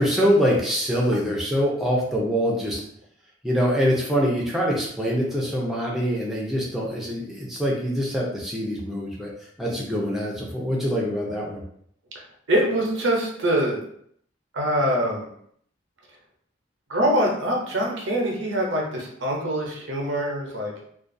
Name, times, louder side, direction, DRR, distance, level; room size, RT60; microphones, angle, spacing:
voice 1, 0.0-2.8 3.4-11.6, equal, ahead, -4 dB, 0.5 m, -24 dB
voice 2, 12.5-13.8 14.5-15.3 16.9-20.8, right 1 dB, 80° right, -1 dB, 0.6 m, -24 dB
2.3 x 2.3 x 2.5 m, 0.67 s
head